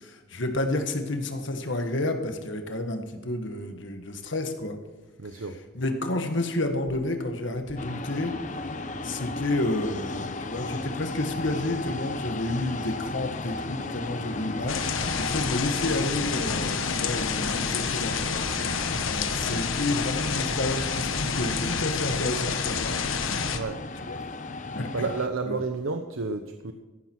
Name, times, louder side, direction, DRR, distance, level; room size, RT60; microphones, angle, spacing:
voice 1, 0.0-4.8 5.3-5.4 5.7-8.3 9.0-14.8 15.2-18.3 19.0-22.9 23.2-23.3 24.1-24.2 24.7-25.1 25.5-25.6, left 2 dB, 65° left, 6 dB, 1.7 m, -30 dB
voice 2, 5.2-5.6 23.5-23.8 24.9-26.7, right 4 dB, 80° right, 6 dB, 0.9 m, -30 dB
sound 1, 7.8-25.3, left 3 dB, 35° left, 0.8 m, -36 dB
sound 2, 14.7-23.6, left 5 dB, 80° left, 1.2 m, -29 dB
14.5 x 12.0 x 4.7 m, 1.2 s
head